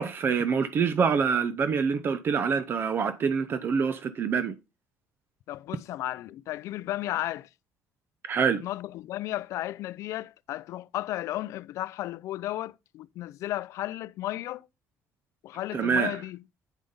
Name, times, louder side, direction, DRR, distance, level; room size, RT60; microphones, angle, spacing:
voice 1, 0.0-4.5 8.2-8.6 15.7-16.2, right 6 dB, 45° right, 0.6 m, -26 dB
voice 2, 5.5-7.5 8.6-14.7 15.4-16.4, left 15 dB, 65° left, 0.3 m, -34 dB
9.0 x 5.1 x 3.9 m
cardioid pair, 120°, 5 cm